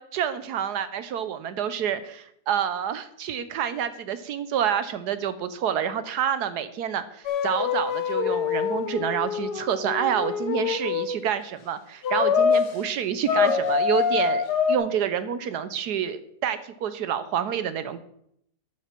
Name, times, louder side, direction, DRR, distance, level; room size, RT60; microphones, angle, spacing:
voice 1, 0.1-18.0, right 9 dB, 75° right, 12 dB, 1.2 m, -28 dB
sound 1, 7.3-11.2 12.0-12.7 13.3-14.8, left 7 dB, 70° left, 1.5 m, -25 dB
12.0 x 7.5 x 4.4 m, 0.72 s
omnidirectional pair, 1.8 m